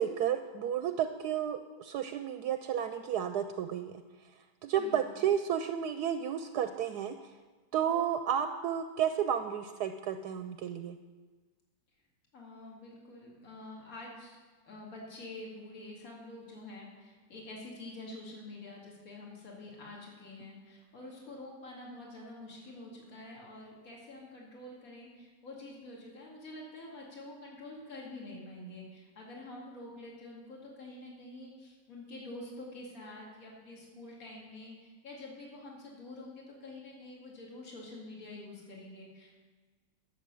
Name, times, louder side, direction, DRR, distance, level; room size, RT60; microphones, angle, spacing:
voice 1, 0.0-3.9 4.6-7.1 7.7-11.0, right 9 dB, 75° right, 8 dB, 1.1 m, -32 dB
voice 2, 4.8-5.1 12.3-14.4 14.6-39.3, left 2 dB, 50° left, -3 dB, 2.7 m, -47 dB
11.5 x 7.4 x 6.9 m, 1.4 s
omnidirectional pair, 1.9 m